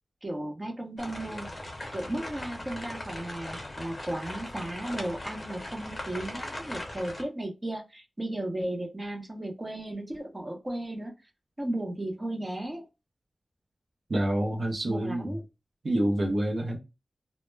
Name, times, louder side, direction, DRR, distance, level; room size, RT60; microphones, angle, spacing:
voice 1, 0.2-1.5 1.9-11.1 11.6-12.9 14.8-15.4, right 1 dB, 25° right, 0.6 m, -35 dB
sound 1, 1.0-7.2, left 1 dB, 35° left, 0.8 m, -39 dB
voice 2, 14.1-15.4 15.8-16.8, right 1 dB, 65° right, 0.6 m, -27 dB
2.1 x 2.0 x 3.2 m
cardioid pair, 55°, 0 cm